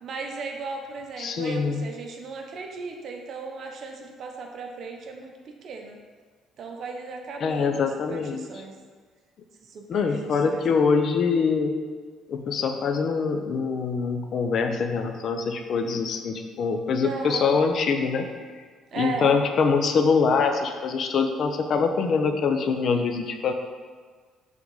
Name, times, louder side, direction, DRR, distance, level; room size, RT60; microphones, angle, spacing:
voice 1, 0.0-6.0 6.6-8.7 9.7-10.8 16.9-17.5 18.9-19.4, right 4 dB, 55° right, 2 dB, 0.9 m, -36 dB
voice 2, 1.2-1.9 7.4-8.4 9.9-11.7 12.3-18.2 18.9-23.5, left 5 dB, 55° left, 6 dB, 0.6 m, -24 dB
6.0 x 3.8 x 5.5 m, 1.5 s
cardioid pair, 115°, 0 cm